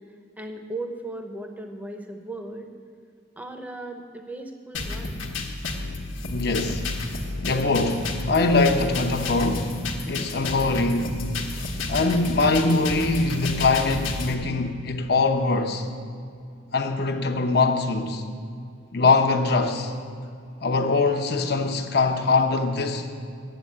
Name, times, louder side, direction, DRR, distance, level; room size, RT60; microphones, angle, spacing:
voice 1, 0.4-2.7 3.4-5.2, right 2 dB, 10° right, 0.8 m, -36 dB
sound 1, 4.7-14.3, left 2 dB, 75° left, 1.2 m, -31 dB
voice 2, 6.2-6.9 7.4-9.7 10.0-11.2 11.9-15.9 16.7-18.2 18.9-19.9 20.6-23.1, left 3 dB, 55° left, 0.8 m, -22 dB
9.2 x 7.7 x 8.4 m
head